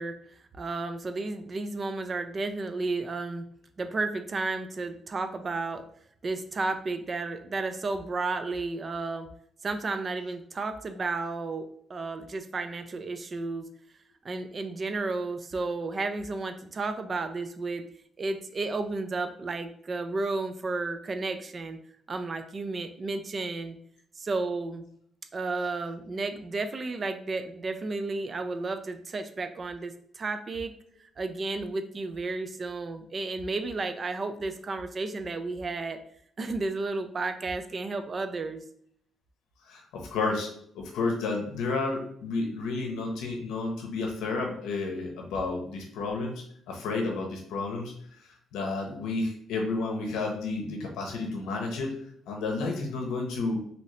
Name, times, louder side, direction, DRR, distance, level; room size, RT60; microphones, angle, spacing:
voice 1, 0.0-3.4 3.8-5.9 6.2-9.3 9.6-13.7 14.2-17.9 18.2-21.8 22.1-23.8 24.2-24.8 25.3-30.7 31.0-36.0 36.4-38.6, right 3 dB, 40° right, 8 dB, 0.4 m, -32 dB
voice 2, 39.6-47.9 48.5-51.9 52.3-53.6, left 3 dB, 90° left, 2 dB, 0.7 m, -31 dB
2.8 x 2.7 x 3.1 m, 0.65 s
cardioid pair, 90°, 0 cm